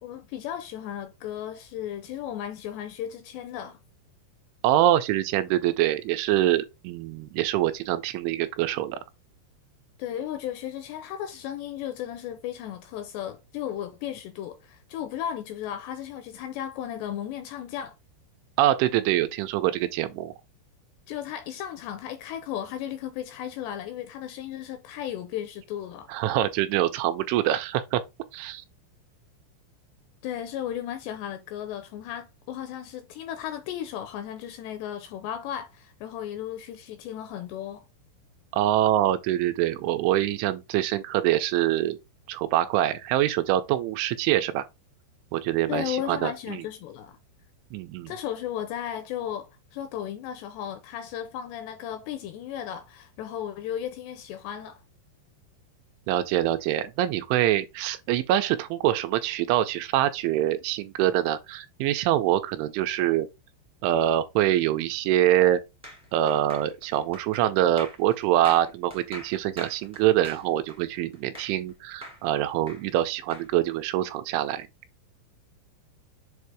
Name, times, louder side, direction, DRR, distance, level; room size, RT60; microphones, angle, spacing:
voice 1, 0.0-3.8 10.0-18.0 21.1-26.1 30.2-37.8 45.7-47.2 48.1-54.8, left 10 dB, 85° left, 2.5 m, -35 dB
voice 2, 4.6-9.0 18.6-20.3 26.1-28.0 28.3-28.6 38.5-42.0 42.3-44.6 45.3-46.6 47.7-48.1 56.1-63.3 63.8-65.6 66.1-74.7, right 13 dB, 85° right, 3.1 m, -24 dB
sound 1, 65.8-71.7 72.0-73.5, equal, 5° right, 0.4 m, -44 dB
7.5 x 2.7 x 4.7 m
omnidirectional pair, 5.5 m